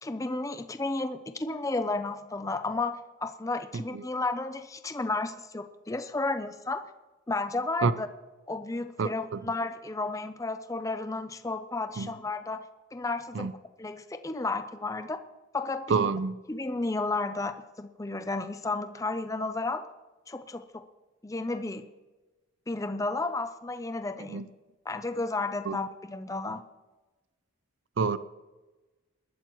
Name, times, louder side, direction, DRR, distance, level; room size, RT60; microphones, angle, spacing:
voice 1, 0.0-6.8 7.3-8.1 8.5-12.6 12.9-13.5 13.8-15.2 15.5-16.1 16.5-19.9 20.3-20.8 21.2-21.8 22.7-24.4 24.9-26.6, left 3 dB, 15° left, 9 dB, 0.5 m, -32 dB
voice 2, 9.0-9.4 12.0-12.1 13.3-13.5 15.9-16.4 24.3-24.4 25.7-25.8 28.0-28.2, right 5 dB, 55° right, 15 dB, 0.4 m, -28 dB
20.5 x 13.0 x 3.0 m, 1.2 s
head